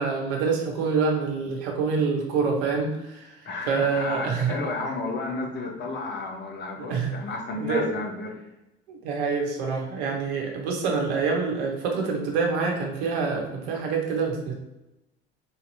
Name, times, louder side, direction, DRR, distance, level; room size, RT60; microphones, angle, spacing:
voice 1, 0.0-3.4 3.7-4.5 6.9-7.2 7.6-7.9 8.9-14.5, right 5 dB, 65° right, 1 dB, 1.1 m, -26 dB
voice 2, 3.4-8.4, left 3 dB, 35° left, 2 dB, 1.1 m, -32 dB
4.0 x 2.9 x 4.0 m, 0.95 s
hypercardioid pair, 70°, 29 cm